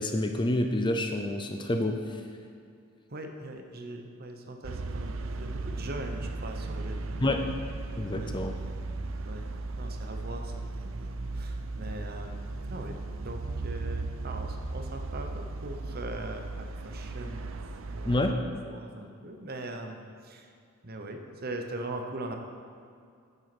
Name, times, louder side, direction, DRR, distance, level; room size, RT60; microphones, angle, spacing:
voice 1, 0.0-2.0 7.2-7.5 8.0-8.5 18.1-18.4, left 1 dB, 20° left, 5 dB, 0.6 m, -28 dB
voice 2, 3.1-7.5 8.1-8.3 9.2-9.5 9.8-13.0 13.2-17.5 17.9-18.3 18.6-20.5 20.8-22.4, right 1 dB, 45° right, 4 dB, 1.0 m, -41 dB
sound 1, 4.6-18.3, right 2 dB, 65° right, 0.6 m, -36 dB
9.4 x 8.1 x 6.1 m, 2.3 s
head